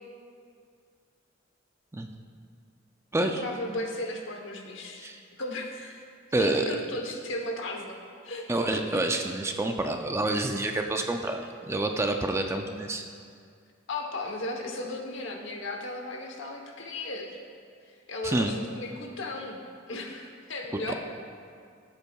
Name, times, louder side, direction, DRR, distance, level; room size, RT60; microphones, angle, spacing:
voice 1, 3.2-5.1 5.4-6.0 6.4-8.0 8.2-8.5 8.7-9.0 13.9-17.4 17.9-19.6 19.9-20.9, left 2 dB, 65° left, 2 dB, 1.0 m, -36 dB
voice 2, 6.3-6.8 8.5-13.0 18.2-18.5 20.9-21.0, right 2 dB, 15° right, 4 dB, 0.4 m, -28 dB
14.5 x 8.1 x 2.3 m, 2.2 s
head